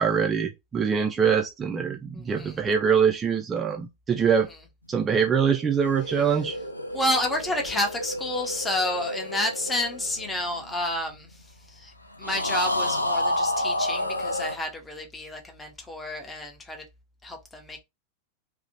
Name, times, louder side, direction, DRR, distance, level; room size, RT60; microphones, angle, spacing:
voice 1, 0.0-4.5 4.9-6.6, right 7 dB, 20° right, 0.3 m, -23 dB
voice 2, 2.1-2.6 4.2-4.3 6.9-11.9 12.2-16.8 17.2-17.8, left 1 dB, 10° left, 0.6 m, -30 dB
sound 1, 5.5-11.1 12.2-14.6, left 1 dB, 85° left, 0.3 m, -30 dB
2.5 x 2.1 x 2.7 m
figure-of-eight pair, 90°, 0 cm